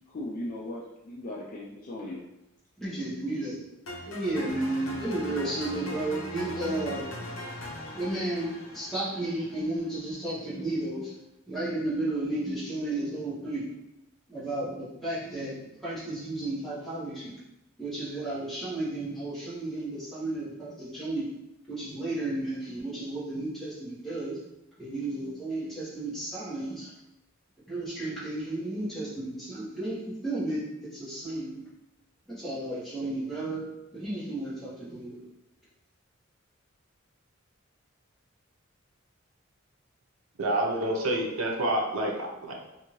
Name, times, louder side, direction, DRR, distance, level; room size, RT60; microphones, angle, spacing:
voice 1, 0.1-2.2, left 1 dB, 40° left, -4 dB, 0.3 m, -37 dB
voice 2, 2.8-3.6 4.0-7.1 7.9-11.1 11.5-13.7 14.3-17.4 17.8-21.3 21.7-24.4 24.8-26.9 27.7-31.6 32.3-33.6 33.9-35.2, right 2 dB, ahead, -10 dB, 1.0 m, -33 dB
sound 1, 3.9-10.0, left 1 dB, 65° left, 0.7 m, -40 dB
voice 3, 40.4-42.6, right 1 dB, 80° right, -1 dB, 0.6 m, -28 dB
2.6 x 2.5 x 3.0 m, 0.91 s
head